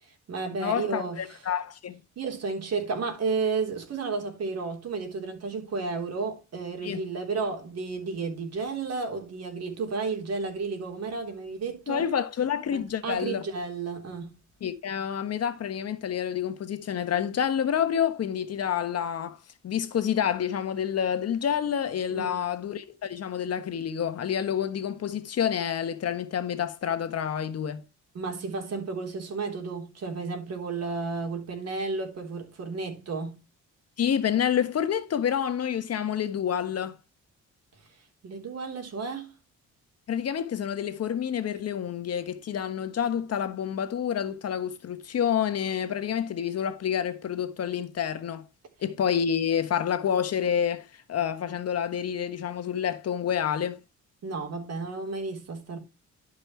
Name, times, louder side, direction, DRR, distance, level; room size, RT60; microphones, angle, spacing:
voice 1, 0.0-1.4 2.2-12.1 12.7-14.3 22.1-22.4 28.1-33.4 38.2-39.4 54.2-55.8, right 4 dB, 55° right, 3.6 m, -32 dB
voice 2, 0.6-2.0 6.8-7.0 11.9-13.4 14.6-19.4 19.6-27.8 34.0-37.0 40.1-48.4 48.8-53.8, left 8 dB, 55° left, 1.3 m, -28 dB
11.5 x 5.5 x 3.2 m
cardioid pair, 90°, 30 cm